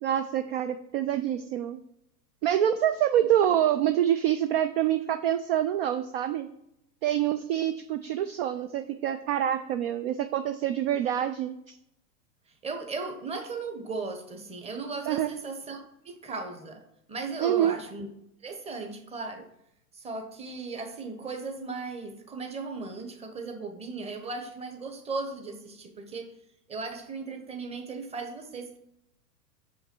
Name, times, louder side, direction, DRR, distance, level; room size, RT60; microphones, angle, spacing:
voice 1, 0.0-1.8 2.4-6.5 7.0-11.8 15.1-15.3 17.4-17.7, right 11 dB, 40° right, 10 dB, 0.4 m, -26 dB
voice 2, 12.6-16.8 17.1-18.1 18.4-19.5 19.9-26.3 26.7-28.8, right 4 dB, 10° right, 5 dB, 0.9 m, -37 dB
6.2 x 5.6 x 4.4 m, 0.79 s
hypercardioid pair, 120°, 50 cm